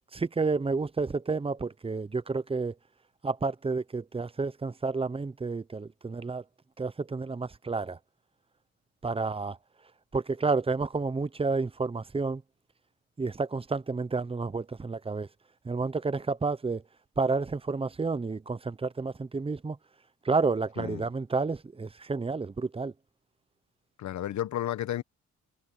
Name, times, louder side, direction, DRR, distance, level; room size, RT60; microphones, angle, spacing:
voice 1, 0.1-2.7 3.2-6.4 6.8-8.0 9.0-9.6 10.1-12.4 13.2-15.3 15.6-16.8 17.2-19.8 20.2-22.9, right 4 dB, 20° right, 0.9 m, -30 dB
voice 2, 20.8-21.1 24.0-25.0, left 12 dB, 70° left, 1.2 m, -32 dB
cardioid pair, 90°, 30 cm